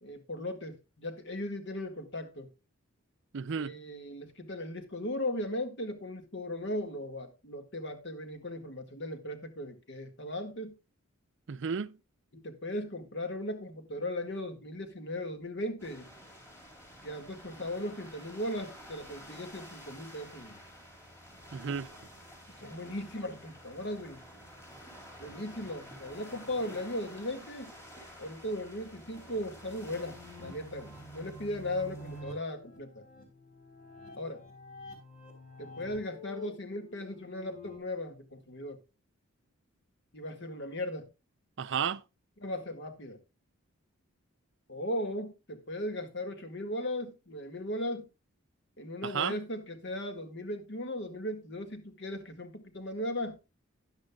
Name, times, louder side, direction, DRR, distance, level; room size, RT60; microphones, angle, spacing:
voice 1, 0.0-2.5 3.6-10.8 12.3-16.1 17.0-20.6 22.6-24.2 25.2-27.7 28.2-33.0 34.2-34.4 35.6-38.8 40.1-41.1 42.4-43.2 44.7-48.1 48.8-53.4, left 1 dB, 55° left, 1.9 m, -37 dB
voice 2, 3.3-3.7 11.5-12.0 21.5-21.9 41.6-42.0 49.0-49.4, right 6 dB, 55° right, 0.5 m, -32 dB
sound 1, 15.8-32.2, equal, 15° left, 3.9 m, -51 dB
sound 2, 29.0-37.8, left 2 dB, 35° left, 3.4 m, -49 dB
13.0 x 10.5 x 2.3 m
head